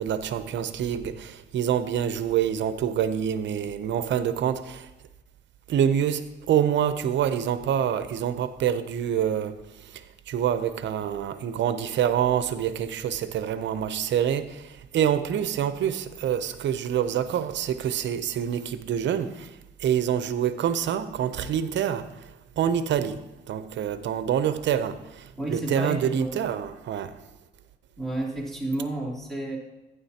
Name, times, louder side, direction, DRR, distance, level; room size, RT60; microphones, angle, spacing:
voice 1, 0.0-4.9 5.7-9.6 9.9-19.5 19.8-22.1 22.6-23.2 23.5-27.1, right 9 dB, 65° right, 0.7 m, -26 dB
voice 2, 25.4-26.3 28.0-29.6, right 1 dB, ahead, 3.0 m, -31 dB
11.0 x 9.3 x 2.9 m
cardioid pair, 90°, 20 cm